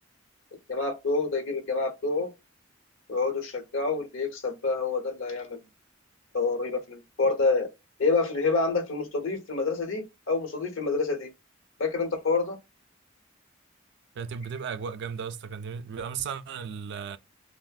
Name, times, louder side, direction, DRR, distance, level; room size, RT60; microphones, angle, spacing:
voice 1, 0.7-2.3 3.1-5.6 6.3-7.7 8.0-11.3 11.8-12.6, left 3 dB, 80° left, 0.8 m, -27 dB
voice 2, 14.2-17.2, right 6 dB, 60° right, 0.3 m, -35 dB
3.3 x 2.0 x 2.3 m
head